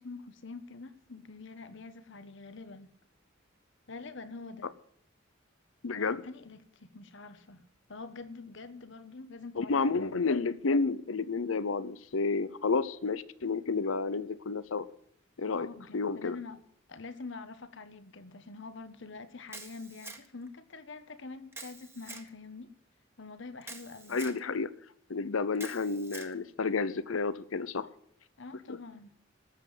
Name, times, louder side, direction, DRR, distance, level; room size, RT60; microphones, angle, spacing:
voice 1, 0.0-2.9 3.9-4.7 5.9-10.1 15.6-16.6 16.9-22.7 23.2-24.2 28.4-29.1, left 3 dB, 65° left, 1.3 m, -46 dB
voice 2, 5.8-6.2 9.6-14.9 15.4-15.7 15.9-16.4 24.1-24.7 25.1-27.9 28.7-28.8, left 4 dB, 85° left, 0.7 m, -30 dB
Camera, 19.5-20.5 21.5-22.3 23.6-24.4 25.6-26.3, right 3 dB, 15° right, 1.7 m, -46 dB
13.0 x 7.8 x 9.2 m
head